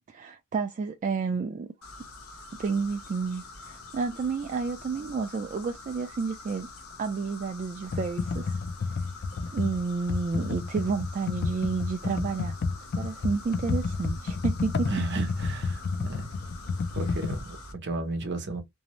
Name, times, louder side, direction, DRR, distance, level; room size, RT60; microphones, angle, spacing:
voice 1, 0.1-1.7 2.6-6.7 7.0-8.6 9.5-12.6 12.9-14.9, right 4 dB, 35° right, 0.3 m, -30 dB
sound 1, 1.8-17.7, left 2 dB, 80° left, 0.8 m, -45 dB
Computer keyboard, 7.9-17.4, left 4 dB, 50° left, 0.4 m, -30 dB
voice 2, 14.8-16.3 16.9-18.6, right 2 dB, 55° right, 0.7 m, -33 dB
2.7 x 2.0 x 2.8 m
head